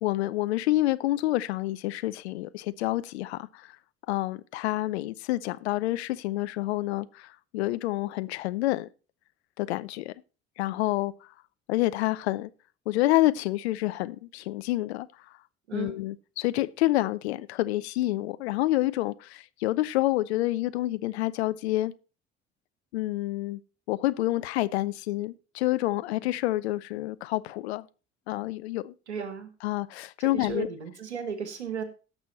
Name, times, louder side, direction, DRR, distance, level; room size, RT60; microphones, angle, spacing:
voice 1, 0.0-3.7 4.1-8.9 9.6-10.1 10.6-11.1 11.7-12.5 12.9-15.1 15.7-21.9 22.9-23.6 23.9-27.9 28.3-28.9 29.6-30.7, left 17 dB, 70° left, 0.6 m, -28 dB
voice 2, 29.1-29.5 30.2-31.8, right 7 dB, 85° right, 1.4 m, -35 dB
16.0 x 6.3 x 4.2 m
figure-of-eight pair, 50°, 33 cm